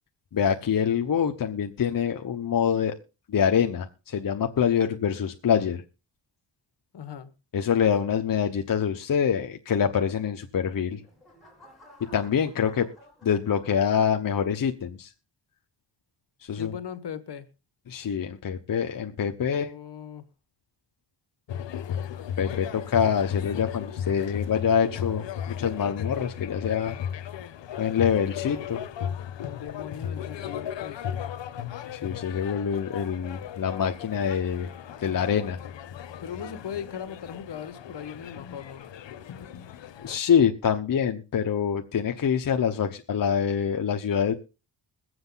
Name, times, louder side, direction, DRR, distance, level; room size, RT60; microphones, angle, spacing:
voice 1, 0.3-2.9 3.3-5.8 7.5-11.0 12.1-12.9 13.2-15.1 16.4-16.7 17.9-19.7 22.4-27.0 27.8-28.8 31.9-34.7 35.0-35.6 40.0-44.3, left 7 dB, 50° left, 1.1 m, -25 dB
voice 2, 6.9-7.3 16.5-17.5 19.4-20.3 29.4-31.1 36.2-38.9, left 8 dB, 65° left, 1.6 m, -39 dB
sound 1, 10.6-14.1 14.7-15.0, left 1 dB, ahead, 6.7 m, -56 dB
sound 2, 21.5-40.2, left 9 dB, 85° left, 1.1 m, -36 dB
22.0 x 7.9 x 4.0 m
wide cardioid pair, 140°, 43 cm